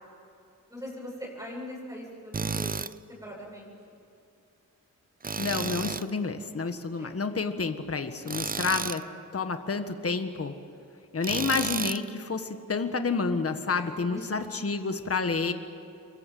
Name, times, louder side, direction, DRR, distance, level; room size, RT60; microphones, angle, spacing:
voice 1, 0.7-2.7 3.2-3.7 7.0-7.1 13.7-14.4, left 1 dB, 10° right, -4 dB, 7.9 m, -41 dB
Tools, 2.3-2.9 5.2-6.1 8.3-9.0 11.2-12.0, right 5 dB, 25° right, 0.6 m, -32 dB
voice 2, 5.4-9.0 9.3-10.5 11.1-15.5, left 4 dB, 45° left, 8 dB, 1.6 m, -29 dB
28.0 x 24.0 x 7.8 m, 2.7 s
wide cardioid pair, 110°, 33 cm